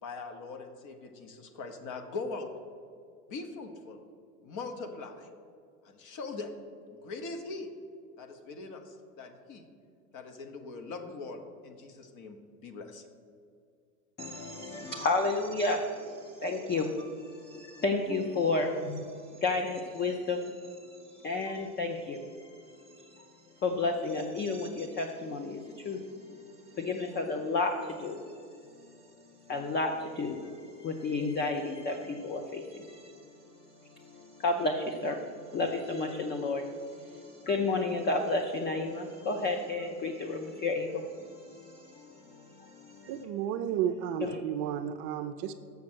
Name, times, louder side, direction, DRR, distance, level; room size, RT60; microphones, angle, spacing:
voice 1, 0.0-2.5 3.3-4.0 4.4-5.3 5.8-6.5 6.9-7.7 8.2-9.7 10.1-12.4 12.6-13.1, left 3 dB, 40° left, 6 dB, 1.1 m, -41 dB
voice 2, 14.2-22.6 22.9-23.3 23.6-26.1 26.7-28.2 29.5-33.2 34.0-43.1 44.2-44.4, left 3 dB, 20° left, 4 dB, 0.6 m, -32 dB
voice 3, 43.1-45.5, right 9 dB, 45° right, 8 dB, 0.5 m, -32 dB
7.0 x 6.2 x 6.1 m, 2.3 s
hypercardioid pair, 100°, 46 cm